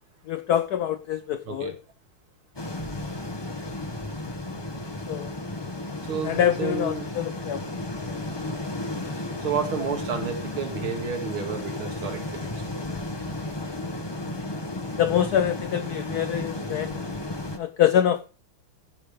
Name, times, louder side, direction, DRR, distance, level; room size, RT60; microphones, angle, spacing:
voice 1, 0.3-1.8 5.1-5.3 6.2-7.6 15.0-17.1 17.6-18.3, left 10 dB, 85° left, 0.8 m, -25 dB
sound 1, 2.6-17.6, left 2 dB, 20° left, 0.8 m, -33 dB
voice 2, 6.1-7.1 9.4-12.5, right 6 dB, 70° right, 2.8 m, -31 dB
15.0 x 5.5 x 4.9 m
omnidirectional pair, 2.4 m